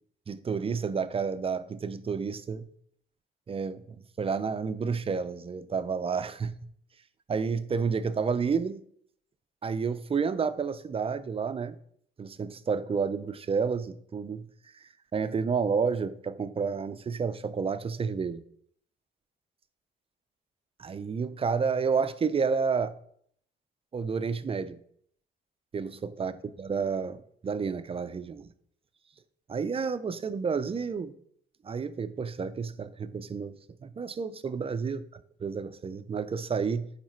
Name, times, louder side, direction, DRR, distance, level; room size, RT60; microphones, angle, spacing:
voice 1, 0.3-2.7 3.5-3.8 4.2-6.7 7.3-8.8 9.6-11.8 12.2-14.5 15.1-18.4 20.8-22.9 23.9-24.8 25.7-28.5 29.5-31.1 31.6-35.0 35.4-36.9, right 5 dB, 30° right, 0.4 m, -30 dB
9.2 x 3.3 x 4.4 m
cardioid pair, 90°, 20 cm